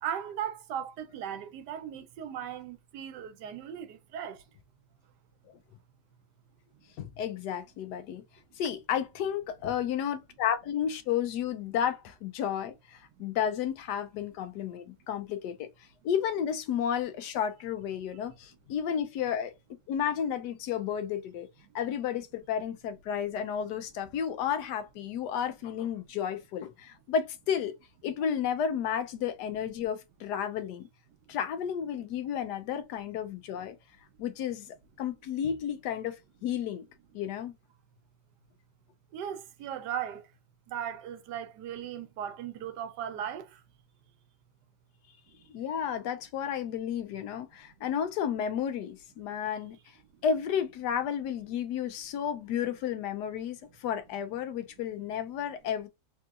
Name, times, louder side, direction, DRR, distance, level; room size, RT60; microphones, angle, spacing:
voice 1, 0.0-4.4 39.1-40.3 40.7-43.6, right 9 dB, 85° right, 1.2 m, -37 dB
voice 2, 7.0-8.2 8.6-15.7 16.0-19.5 19.9-21.5 21.7-27.8 28.0-30.9 31.3-33.8 34.2-36.1 36.4-36.9 37.1-37.5 45.5-49.8 50.2-55.9, left 8 dB, 85° left, 1.2 m, -32 dB
3.5 x 2.8 x 2.3 m
omnidirectional pair, 1.8 m